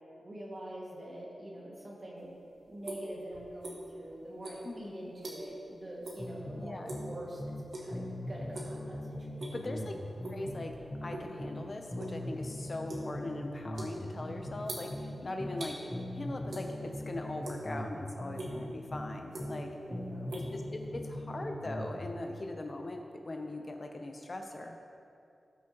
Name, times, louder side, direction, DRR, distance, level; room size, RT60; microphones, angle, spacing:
voice 1, 0.2-2.3 2.7-9.0 9.3-9.8 15.2-15.5 19.8-20.4, right 1 dB, 40° right, -4 dB, 2.1 m, -45 dB
sound 1, 2.2-4.0 4.4-5.7 6.0-6.3 6.6-7.1 7.7-8.0 8.4-8.8 9.2-9.7 10.2-11.3 11.6-15.8 16.5-17.0 17.3-17.9 18.3-18.5 19.1-19.8 20.0-21.2, right 1 dB, 80° right, 1.7 m, -44 dB
voice 2, 4.6-5.1 6.6-7.0 9.5-9.9 10.3-19.7 20.3-24.9, left 2 dB, 40° left, 3 dB, 0.7 m, -40 dB
sound 2, 6.2-7.6 7.9-11.6 11.9-15.6 15.9-19.6 19.9-22.0, left 1 dB, 15° left, 1.2 m, -40 dB
18.0 x 6.1 x 3.1 m, 2.6 s
wide cardioid pair, 115°, 0 cm